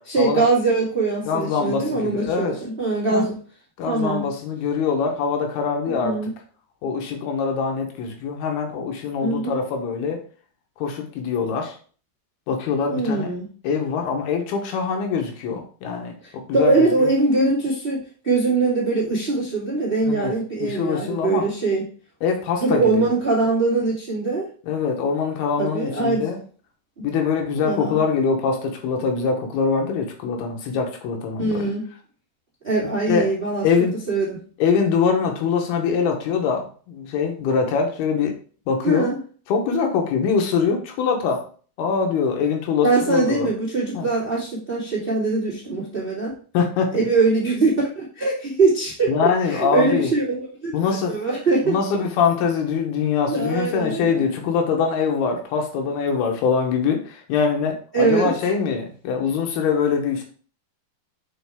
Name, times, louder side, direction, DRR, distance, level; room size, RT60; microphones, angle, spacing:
voice 1, 0.1-3.4 3.8-4.3 5.9-6.3 9.2-9.6 12.9-13.5 16.2-21.8 22.6-24.4 25.6-26.2 27.0-27.1 27.5-28.0 31.4-31.9 32.6-33.7 34.1-34.4 38.8-39.2 42.8-46.3 46.9-50.7 51.1-51.8 53.3-54.2 57.9-58.3, right 3 dB, 30° right, -6 dB, 1.0 m, -22 dB
voice 2, 1.3-2.6 3.1-3.2 3.8-6.2 6.8-10.2 10.8-11.8 12.5-13.3 13.6-17.1 20.0-20.3 20.6-21.4 22.2-23.1 24.7-26.4 27.0-31.7 33.1-33.3 33.6-33.9 34.6-38.4 38.7-39.1 39.5-41.4 41.8-43.5 43.9-44.1 46.5-47.0 49.1-50.1 50.7-51.2 51.7-60.2, left 5 dB, 75° left, 3 dB, 3.0 m, -23 dB
6.8 x 4.7 x 3.5 m, 0.41 s
omnidirectional pair, 4.6 m